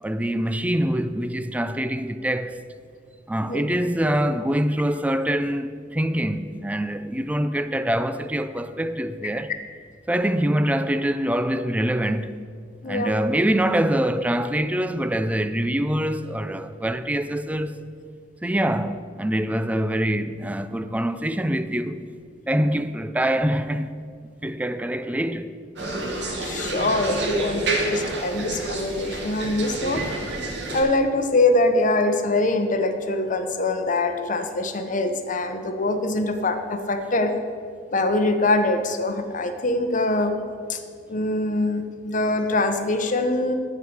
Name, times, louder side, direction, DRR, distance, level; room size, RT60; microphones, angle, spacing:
voice 1, 0.0-2.6 3.3-9.5 10.1-12.4 12.9-17.8 18.4-22.0 22.5-23.9 24.4-25.5, right 1 dB, 10° right, 0.3 m, -24 dB
sound 1, 25.8-30.8, right 2 dB, 65° right, 1.9 m, -29 dB
voice 2, 26.4-30.1 30.7-37.4 37.9-40.4 40.7-40.8 41.1-43.5, left 2 dB, 45° left, 0.8 m, -23 dB
11.5 x 4.8 x 7.9 m
head